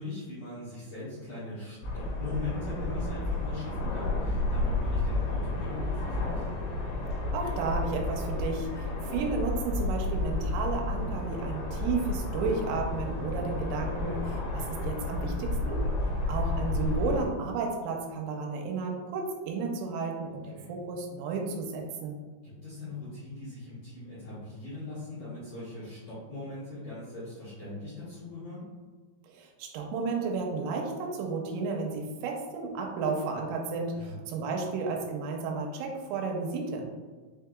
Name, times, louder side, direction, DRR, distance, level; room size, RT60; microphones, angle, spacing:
voice 1, 0.0-6.4 20.5-20.7 22.4-28.6 33.9-34.2, left 2 dB, 65° left, -12 dB, 2.0 m, -40 dB
sound 1, 1.8-17.2, left 2 dB, 85° left, 3.4 m, -31 dB
voice 2, 7.3-15.8 16.3-22.2 29.3-36.9, right 4 dB, 85° right, 1 dB, 3.2 m, -33 dB
7.5 x 2.8 x 2.3 m, 1.4 s
omnidirectional pair, 6.0 m